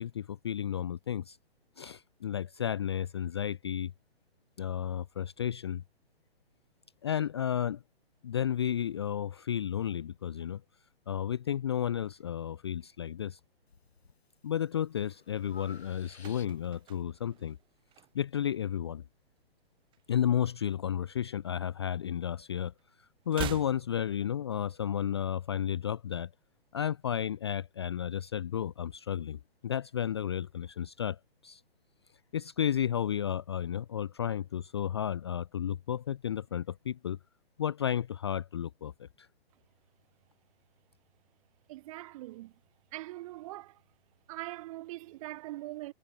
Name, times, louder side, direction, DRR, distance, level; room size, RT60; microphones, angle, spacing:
voice 1, 0.0-1.4 1.8-3.9 4.6-5.8 7.0-7.8 8.2-10.6 11.1-13.4 14.4-17.6 18.1-19.0 20.1-22.7 23.3-26.3 26.7-31.2 31.4-31.6 32.3-37.2 37.6-38.9 39.2-39.3, left 9 dB, 25° left, 0.4 m, -32 dB
Breathing, 13.7-14.2 14.6-16.9, left 4 dB, 80° left, 1.6 m, -54 dB
sound 1, 16.1-18.5 18.8-19.1 19.4-20.8 21.1-22.5 22.7-24.8 25.1-25.2, right 13 dB, 15° right, 1.9 m, -45 dB
voice 2, 41.7-42.5 42.9-43.8 44.3-45.9, right 18 dB, 35° right, 2.7 m, -42 dB
figure-of-eight pair, 125°, 31 cm